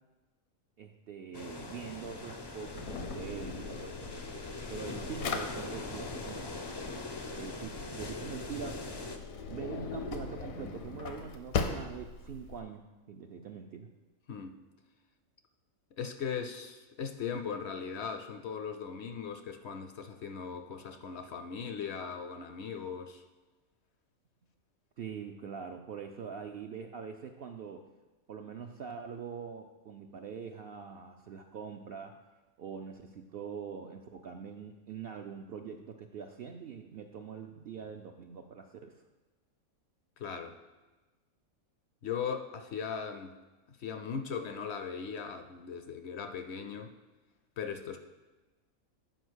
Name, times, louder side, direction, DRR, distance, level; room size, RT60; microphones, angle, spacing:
voice 1, 0.8-4.3 4.7-6.5 7.4-9.1 9.5-13.9 25.0-27.9 28.3-32.2 32.6-38.9, right 6 dB, 65° right, 4 dB, 0.6 m, -44 dB
sound 1, 1.3-9.2, left 2 dB, 45° left, 0.3 m, -42 dB
Drawer open or close, 2.7-12.6, left 5 dB, 80° left, 1.2 m, -40 dB
voice 2, 16.0-23.2 40.2-40.6 42.0-43.4 43.7-46.9 47.6-48.0, left 6 dB, 65° left, 7 dB, 0.7 m, -38 dB
9.1 x 4.8 x 6.2 m, 1.2 s
omnidirectional pair, 1.4 m